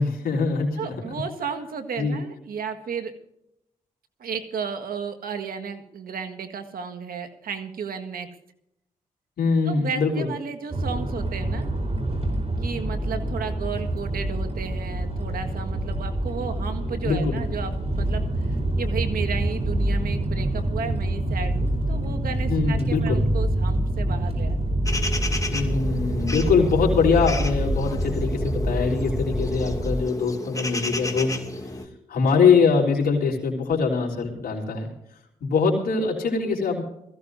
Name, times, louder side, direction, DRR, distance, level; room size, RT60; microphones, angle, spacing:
voice 1, 0.0-0.9 2.0-2.2 9.4-10.3 17.0-17.4 22.5-23.2 25.5-31.3 31.6-31.7 32.1-34.9 35.4-36.8, left 5 dB, 75° left, -2 dB, 3.5 m, -23 dB
voice 2, 0.8-3.1 4.2-8.3 9.6-11.7 12.6-24.8, right 6 dB, 80° right, 6 dB, 1.7 m, -33 dB
sound 1, 10.7-30.0, right 1 dB, 45° right, 4.0 m, -26 dB
sound 2, 24.9-31.9, left 2 dB, 20° left, 2.3 m, -32 dB
21.0 x 15.0 x 2.7 m, 0.79 s
supercardioid pair, 50°, 15 cm